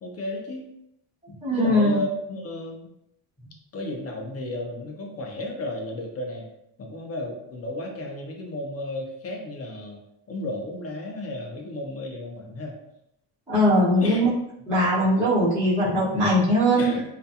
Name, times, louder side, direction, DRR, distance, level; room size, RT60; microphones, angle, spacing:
voice 1, 0.0-0.6 1.3-2.9 3.7-6.4 6.8-10.0 10.3-12.8 14.0-14.2 16.8-17.0, left 1 dB, 35° left, 1 dB, 0.5 m, -33 dB
voice 2, 1.4-2.0 13.5-14.3 14.7-16.9, equal, 5° right, -15 dB, 1.0 m, -20 dB
2.3 x 2.3 x 2.7 m, 0.81 s
cardioid pair, 125°, 47 cm